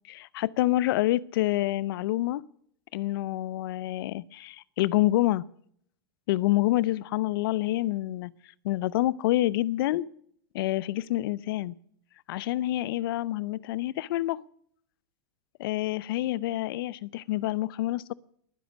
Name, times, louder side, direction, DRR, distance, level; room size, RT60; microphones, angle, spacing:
voice 1, 0.1-2.4 2.9-5.4 6.3-8.3 8.6-10.1 10.5-11.7 12.3-14.4 15.6-18.1, left 16 dB, 65° left, 0.7 m, -27 dB
21.5 x 10.0 x 6.2 m
hypercardioid pair, 100°, 13 cm